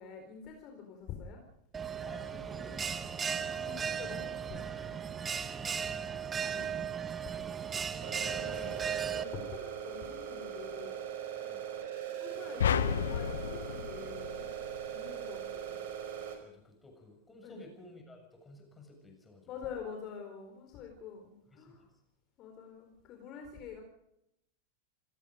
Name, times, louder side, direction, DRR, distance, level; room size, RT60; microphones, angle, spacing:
voice 1, 0.0-1.4 3.5-5.0 5.6-5.7 6.5-6.7 8.3-11.0 12.2-14.5 14.9-15.8 17.4-17.6 19.5-21.9 22.4-23.8, left 6 dB, 35° left, 3 dB, 4.5 m, -46 dB
Bell, 1.7-9.2, right 7 dB, 20° right, 1.3 m, -36 dB
voice 2, 2.0-3.6 5.9-6.1 6.4-6.6 11.4-11.6 16.4-19.5 21.5-21.7, left 1 dB, 10° left, 3 dB, 7.1 m, -54 dB
sound 1, 8.0-16.4, right 9 dB, 55° right, 5.3 m, -40 dB
sound 2, 12.6-15.0, left 8 dB, 65° left, 1.1 m, -32 dB
28.0 x 18.0 x 5.3 m, 0.80 s
figure-of-eight pair, 90°, 0 cm